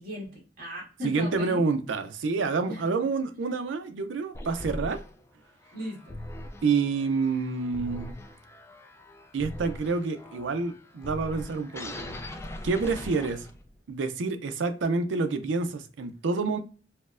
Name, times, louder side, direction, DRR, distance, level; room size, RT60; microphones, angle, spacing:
voice 1, 0.0-1.6 2.7-3.0 5.7-6.0 13.3-13.4, equal, 55° right, 1.6 m, -37 dB
voice 2, 1.0-5.0 6.6-8.2 9.3-12.1 12.6-13.5 13.9-16.6, right 4 dB, 80° right, 0.5 m, -28 dB
sound 1, 4.3-13.8, left 1 dB, 15° left, 0.3 m, -41 dB
4.3 x 2.1 x 2.4 m
head